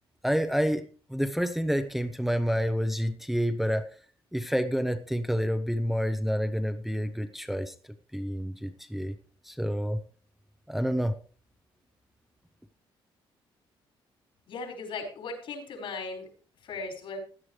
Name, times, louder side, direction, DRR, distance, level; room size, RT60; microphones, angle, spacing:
voice 1, 0.2-0.8 1.1-3.9 4.3-7.7 8.1-9.1 9.4-10.0 10.7-11.1, equal, ahead, 7 dB, 0.7 m, -28 dB
voice 2, 14.5-16.3 16.6-17.2, left 3 dB, 70° left, 2 dB, 4.9 m, -37 dB
16.5 x 10.5 x 3.2 m, 0.41 s
cardioid pair, 135°, 9 cm